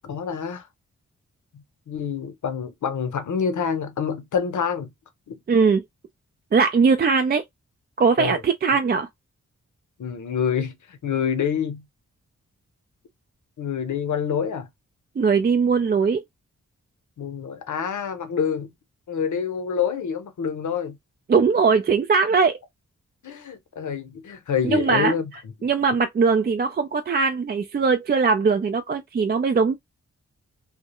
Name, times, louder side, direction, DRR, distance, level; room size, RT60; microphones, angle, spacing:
voice 1, 0.0-0.7 1.5-4.9 5.3-5.4 8.2-8.4 10.0-11.8 13.6-14.7 17.2-18.7 19.1-21.0 23.2-25.3 25.6-25.7, left 7 dB, 75° left, 0.7 m, -27 dB
voice 2, 5.5-5.8 6.5-7.4 8.0-9.1 15.2-16.2 21.3-22.6 24.7-25.1 25.6-29.7, right 5 dB, 35° right, 0.4 m, -20 dB
2.3 x 2.1 x 2.8 m
cardioid pair, 55°, 31 cm